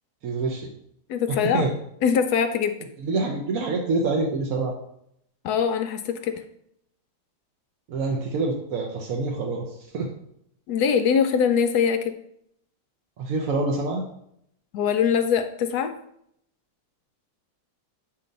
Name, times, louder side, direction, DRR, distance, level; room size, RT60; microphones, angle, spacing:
voice 1, 0.2-0.7 1.3-1.7 3.0-4.7 7.9-10.1 13.2-14.0, right 3 dB, 60° right, 1 dB, 1.0 m, -26 dB
voice 2, 1.1-1.7 2.0-2.7 5.4-6.4 10.7-12.1 14.7-15.9, left 7 dB, 75° left, 7 dB, 0.9 m, -22 dB
7.5 x 2.8 x 5.2 m, 0.73 s
omnidirectional pair, 2.0 m